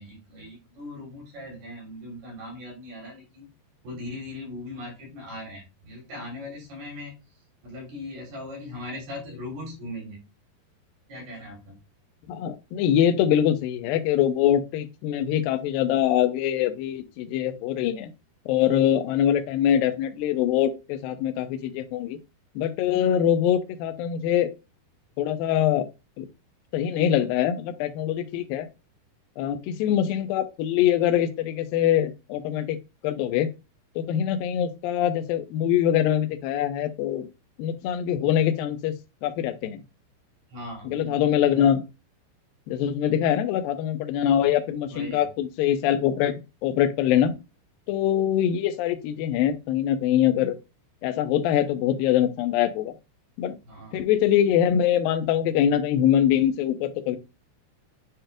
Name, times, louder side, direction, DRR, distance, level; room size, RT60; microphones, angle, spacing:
voice 1, 0.0-3.5 3.8-7.2 7.6-10.3 11.1-11.8 40.5-41.2 44.9-45.3 53.7-54.1, left 1 dB, 65° right, -2 dB, 5.1 m, -39 dB
voice 2, 12.3-18.1 18.5-22.2 22.6-24.5 25.2-25.8 26.2-26.3 26.7-28.7 29.4-32.8 33.0-33.5 34.0-37.3 37.6-38.9 39.2-39.8 40.9-41.8 42.7-46.3 46.6-47.4 47.9-50.6 51.0-52.9 53.4-53.6 53.9-57.2, left 10 dB, 80° left, 8 dB, 2.1 m, -23 dB
9.5 x 4.4 x 2.4 m, 0.27 s
omnidirectional pair, 5.0 m